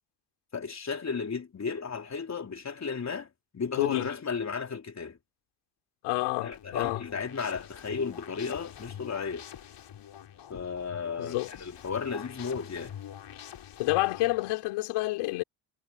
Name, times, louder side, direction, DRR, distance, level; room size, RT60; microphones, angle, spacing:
voice 1, 0.5-3.3 3.5-5.2 6.4-9.5 10.5-13.0, left 5 dB, 35° left, 3.7 m, -34 dB
voice 2, 6.0-7.0 11.2-11.5 13.8-15.4, left 19 dB, 90° left, 3.5 m, -28 dB
sound 1, 6.5-14.5, left 10 dB, 55° left, 4.5 m, -45 dB
cardioid pair, 85°, 49 cm